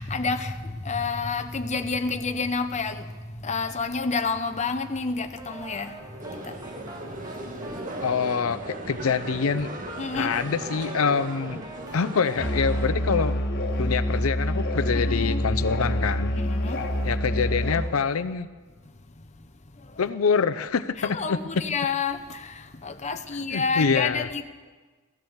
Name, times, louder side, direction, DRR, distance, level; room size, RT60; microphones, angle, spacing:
voice 1, 0.0-6.0 6.3-6.6 10.0-10.3 14.9-15.5 16.3-16.9 19.8-20.0 21.0-24.4, left 4 dB, 35° left, 0.9 m, -29 dB
sound 1, 5.4-13.4, right 1 dB, 20° right, 2.2 m, -43 dB
sound 2, 6.2-12.9, right 1 dB, 40° right, 1.7 m, -37 dB
voice 2, 8.0-9.7 10.1-11.6 11.9-13.3 13.8-16.3 17.0-18.5 20.0-21.4 23.5-24.3, left 5 dB, 85° left, 0.6 m, -25 dB
Musical instrument, 12.4-18.0, equal, 55° left, 1.7 m, -26 dB
16.0 x 12.5 x 7.2 m
head